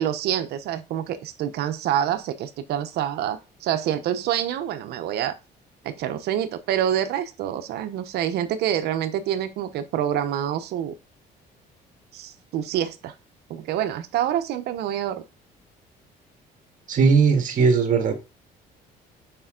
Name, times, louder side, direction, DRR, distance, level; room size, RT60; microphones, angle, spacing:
voice 1, 0.0-5.4 5.8-10.9 12.1-13.1 13.5-15.2, right 10 dB, 75° right, 0.8 m, -27 dB
voice 2, 16.9-18.1, right 5 dB, 50° right, 1.9 m, -18 dB
6.9 x 5.1 x 3.7 m
cardioid pair, 110°, 17 cm